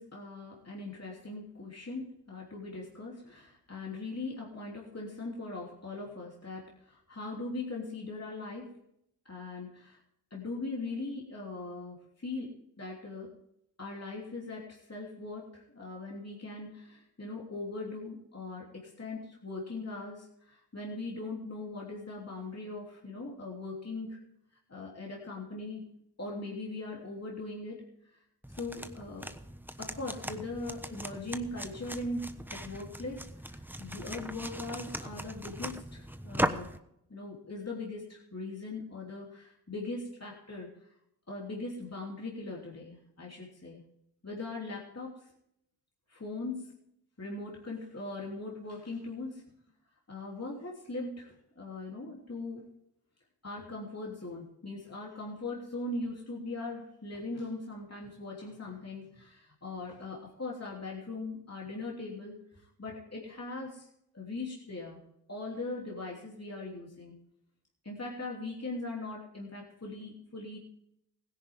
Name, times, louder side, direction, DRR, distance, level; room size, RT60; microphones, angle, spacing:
voice 1, 0.0-8.7 9.2-10.0 10.3-13.3 13.8-24.2 24.7-25.8 26.2-27.8 28.1-28.2 28.5-29.3 29.8-36.7 37.1-40.9 41.3-43.8 44.2-45.3 46.1-46.8 47.2-49.4 50.1-52.6 53.4-63.9 64.1-65.0 65.3-67.1 67.8-70.6, left 2 dB, 40° left, -2 dB, 3.2 m, -40 dB
sound 1, 28.4-36.8, right 1 dB, 5° right, 1.1 m, -38 dB
16.5 x 10.5 x 3.6 m, 0.75 s
cardioid pair, 45°, 41 cm